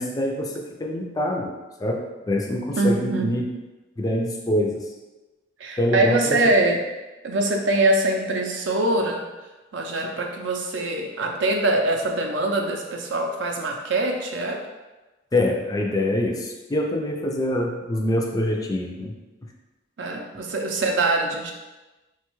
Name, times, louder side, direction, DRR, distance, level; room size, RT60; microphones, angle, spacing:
voice 1, 0.0-3.5 4.0-4.9 5.8-6.6 15.3-19.1, left 1 dB, 20° left, 1 dB, 0.3 m, -25 dB
voice 2, 2.8-3.3 5.6-6.8 7.2-9.3 9.7-14.6 20.0-21.5, right 2 dB, 65° right, 2 dB, 0.5 m, -23 dB
4.1 x 2.2 x 3.0 m, 1.1 s
head